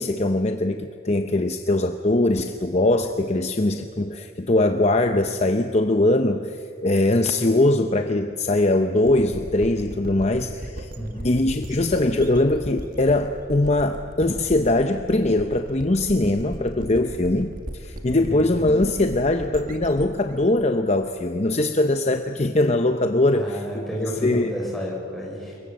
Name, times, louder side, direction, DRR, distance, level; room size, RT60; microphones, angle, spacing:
voice 1, 0.0-10.9 11.2-23.8 24.2-24.5, left 2 dB, 30° left, 7 dB, 0.7 m, -21 dB
sound 1, 9.0-21.7, right 1 dB, 40° right, 1.7 m, -37 dB
voice 2, 11.0-11.3 18.2-18.5 23.3-25.6, equal, ahead, -4 dB, 6.3 m, -31 dB
27.0 x 22.5 x 7.6 m, 2.5 s
head